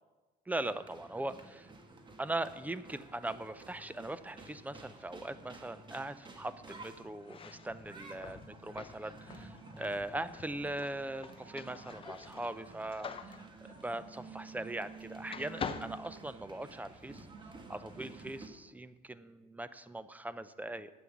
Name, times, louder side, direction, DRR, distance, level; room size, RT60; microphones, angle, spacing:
voice 1, 0.5-1.7 2.2-17.3 17.7-20.9, right 2 dB, 10° right, 14 dB, 0.5 m, -40 dB
sound 1, 0.6-18.5, right 3 dB, 30° right, 1.3 m, -52 dB
sound 2, 7.2-15.0 15.3-16.9, left 6 dB, 30° left, 0.7 m, -46 dB
9.7 x 7.8 x 7.1 m, 1.2 s
cardioid pair, 110°, 17 cm